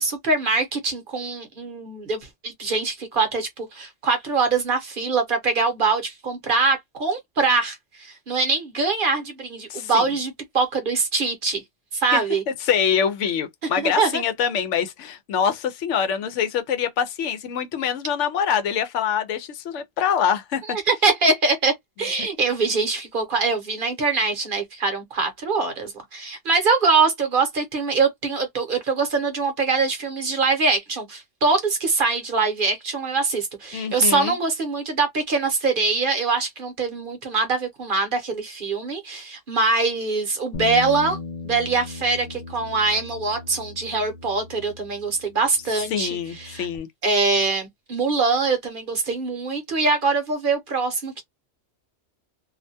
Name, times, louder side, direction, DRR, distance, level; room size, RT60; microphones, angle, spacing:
voice 1, 0.0-11.6 11.9-12.4 13.8-14.2 20.7-41.2 41.4-46.7 47.0-51.2, right 4 dB, 50° right, 0.9 m, -23 dB
voice 2, 9.7-10.0 12.1-12.2 12.7-20.6 22.2-22.3 33.7-34.4 45.9-46.9, left 7 dB, 80° left, 0.9 m, -24 dB
Bass guitar, 40.5-46.8, left 3 dB, 60° left, 0.5 m, -38 dB
2.4 x 2.2 x 2.6 m
omnidirectional pair, 1.2 m